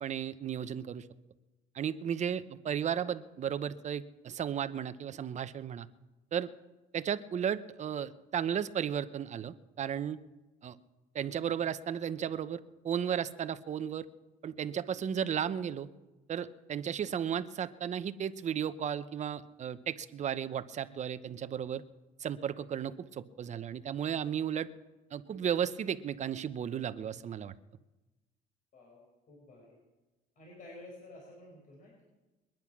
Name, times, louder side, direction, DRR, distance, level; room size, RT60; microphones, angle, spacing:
voice 1, 0.0-1.1 1.7-5.9 6.3-6.5 6.9-10.2 10.6-10.8 11.1-12.6 12.8-14.1 14.4-15.9 16.3-21.8 22.2-24.7 25.1-27.5, right 8 dB, 45° right, 13 dB, 0.8 m, -34 dB
voice 2, 28.7-29.8 30.4-32.0, left 2 dB, 50° left, -2 dB, 5.3 m, -52 dB
22.0 x 10.5 x 6.0 m, 1.1 s
cardioid pair, 110°, 17 cm